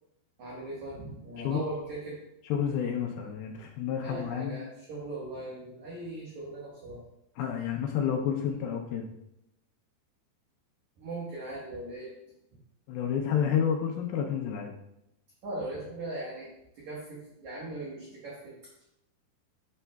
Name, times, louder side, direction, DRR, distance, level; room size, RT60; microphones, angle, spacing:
voice 1, 0.4-2.2 4.0-7.0 11.0-12.1 15.4-18.6, right 2 dB, 65° right, -5 dB, 1.9 m, -39 dB
voice 2, 2.5-4.6 7.4-9.1 12.9-14.7, left 8 dB, 85° left, 1 dB, 2.1 m, -30 dB
8.1 x 7.2 x 2.3 m, 0.82 s
omnidirectional pair, 5.1 m